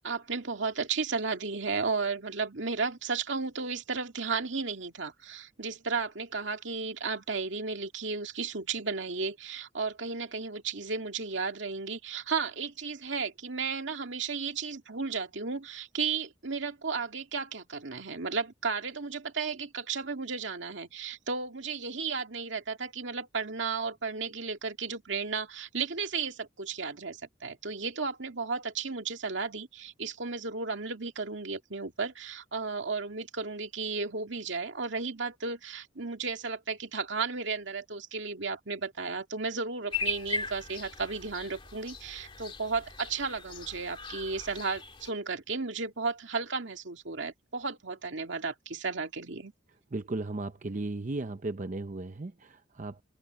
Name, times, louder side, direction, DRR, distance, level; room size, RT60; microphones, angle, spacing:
voice 1, 0.0-49.5, right 4 dB, 75° right, 2.2 m, -34 dB
sound 1, 39.9-45.1, left 3 dB, 25° left, 2.3 m, -38 dB
voice 2, 49.9-53.0, right 2 dB, 40° right, 0.6 m, -35 dB
head